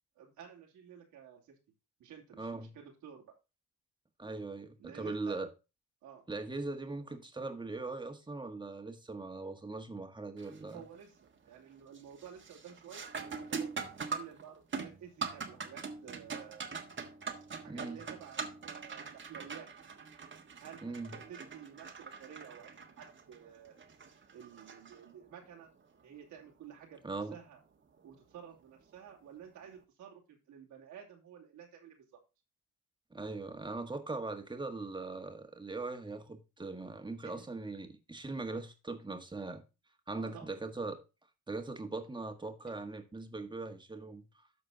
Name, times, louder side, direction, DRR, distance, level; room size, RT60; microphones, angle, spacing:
voice 1, 0.2-1.5 2.0-3.4 4.8-5.4 6.0-6.2 10.7-16.7 17.6-19.7 20.6-23.8 24.3-27.6 28.0-32.2 37.4-37.5 40.1-40.5, right 8 dB, 90° right, 2.9 m, -52 dB
voice 2, 2.4-2.7 4.2-5.5 6.3-10.8 17.7-18.0 20.8-21.2 27.0-27.4 33.1-39.6 40.1-41.0 41.5-44.2, right 3 dB, 15° right, 1.6 m, -40 dB
sound 1, 10.4-10.8 11.2-11.6 11.9-25.5 28.0-28.1 28.9-29.1, right 5 dB, 40° right, 1.5 m, -43 dB
13.0 x 4.3 x 3.9 m
cardioid pair, 90°, 30 cm